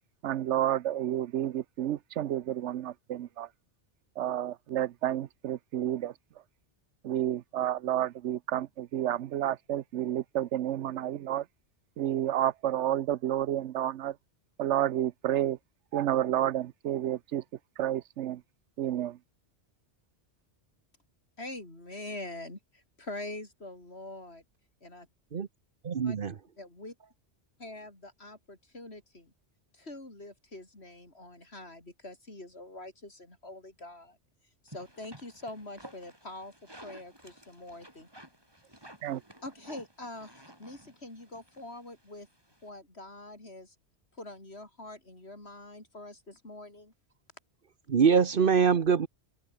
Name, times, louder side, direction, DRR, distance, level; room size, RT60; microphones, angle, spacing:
voice 1, 0.2-3.5 4.2-6.1 7.0-11.4 12.0-14.2 14.6-15.6 15.9-17.4 17.8-18.4 18.8-19.2 39.0-39.2, right 12 dB, 85° right, 1.0 m, -30 dB
voice 2, 21.4-24.4 24.8-25.1 26.0-26.2 26.6-26.9 27.6-29.3 29.7-34.2 34.6-38.1 39.4-42.3 42.6-43.8 44.1-46.9, left 2 dB, 65° left, 5.9 m, -44 dB
voice 3, 25.8-26.3 47.9-49.1, right 6 dB, 50° right, 1.0 m, -23 dB
sound 1, 34.7-42.7, right 1 dB, 20° right, 5.8 m, -53 dB
omnidirectional pair, 1.2 m